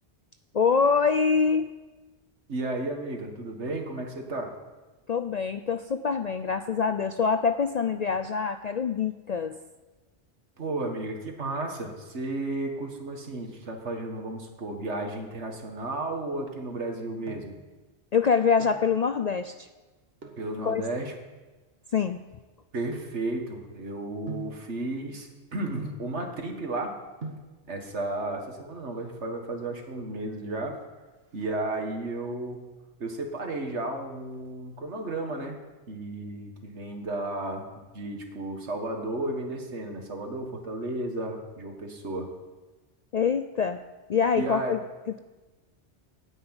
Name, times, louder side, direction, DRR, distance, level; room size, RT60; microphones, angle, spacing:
voice 1, 0.5-1.7 5.1-9.6 18.1-19.7 20.6-20.8 21.9-22.2 43.1-43.8 44.1-44.8, left 5 dB, 55° left, 9 dB, 0.4 m, -25 dB
voice 2, 2.5-4.5 10.6-17.6 20.4-21.1 22.7-26.9 27.7-30.8 31.3-32.6 33.0-35.6 35.9-37.6 37.9-42.3 44.3-44.8, right 2 dB, 75° right, 3 dB, 2.1 m, -33 dB
sound 1, 17.3-17.7 18.4-18.9 20.2-20.5 21.3-23.7 24.3-24.7 25.8-26.2 26.9-27.0 27.2-27.6 28.7-29.2 29.5-29.6 29.8-30.0 30.4-30.8 31.1-32.1 32.5-33.0 33.3-34.5 34.8-34.9, right 2 dB, 60° right, 1.8 m, -43 dB
9.8 x 9.3 x 8.9 m, 1.2 s
omnidirectional pair, 1.2 m